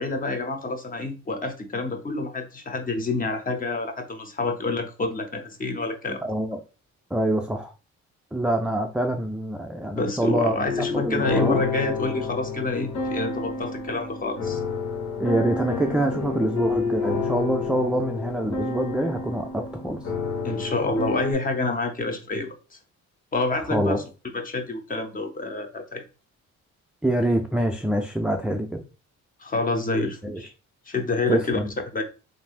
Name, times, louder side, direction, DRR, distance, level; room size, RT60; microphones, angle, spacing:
voice 1, 0.0-6.2 9.9-14.6 20.4-22.5 23.3-24.0 24.3-26.0 29.4-30.5 30.9-31.6 31.9-32.0, left 3 dB, 30° left, 0.7 m, -28 dB
voice 2, 6.2-6.6 7.1-7.7 8.3-10.7 10.9-11.6 15.2-20.0 23.7-24.0 27.0-28.8 30.2-30.4 31.3-31.7, right 1 dB, 5° right, 0.3 m, -25 dB
sound 1, 10.6-21.3, left 4 dB, 70° left, 1.2 m, -29 dB
3.3 x 2.6 x 2.4 m
cardioid pair, 90°, 30 cm